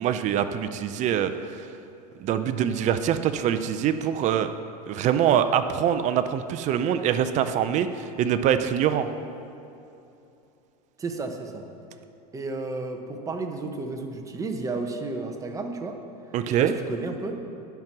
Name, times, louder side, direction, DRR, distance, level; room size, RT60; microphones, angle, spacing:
voice 1, 0.0-1.7 2.2-4.5 4.9-9.1 16.3-16.7, right 9 dB, 40° right, 11 dB, 0.5 m, -24 dB
voice 2, 11.0-11.6 12.3-16.0 16.5-17.4, right 3 dB, 15° right, 4 dB, 0.9 m, -32 dB
10.5 x 5.9 x 6.0 m, 2.8 s
supercardioid pair, 125°, 20 cm